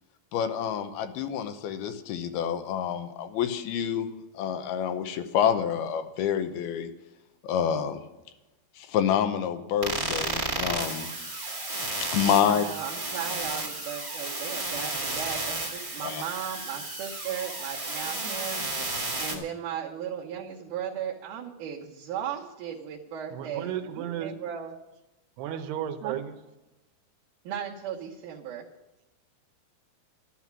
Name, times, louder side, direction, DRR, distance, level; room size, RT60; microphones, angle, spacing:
voice 1, 0.3-4.1 4.3-6.9 7.4-8.0 8.8-11.1 11.9-12.7 16.0-16.2 19.3-19.4, left 8 dB, 80° left, 9 dB, 2.8 m, -28 dB
sound 1, 9.8-19.4, right 2 dB, 20° right, 0.9 m, -33 dB
voice 2, 12.2-18.6 19.2-24.8 26.0-26.2 27.4-28.7, right 9 dB, 65° right, -6 dB, 2.4 m, -36 dB
voice 3, 23.3-24.3 25.4-26.2, right 10 dB, 85° right, 5 dB, 2.9 m, -33 dB
12.0 x 11.5 x 6.1 m, 0.99 s
omnidirectional pair, 4.5 m